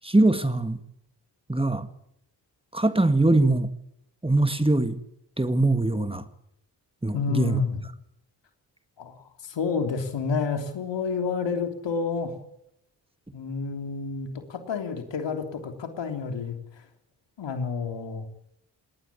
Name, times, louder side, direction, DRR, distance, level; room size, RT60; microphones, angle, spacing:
voice 1, 0.0-0.8 1.5-1.9 2.7-3.7 4.2-5.0 5.4-6.2 7.0-7.6, right 2 dB, 10° right, 10 dB, 1.8 m, -22 dB
voice 2, 7.1-7.8 9.0-9.2 9.4-12.3 13.3-16.5 17.4-18.3, left 5 dB, 75° left, 6 dB, 3.4 m, -29 dB
19.0 x 19.0 x 8.5 m, 0.78 s
cardioid pair, 55°, 44 cm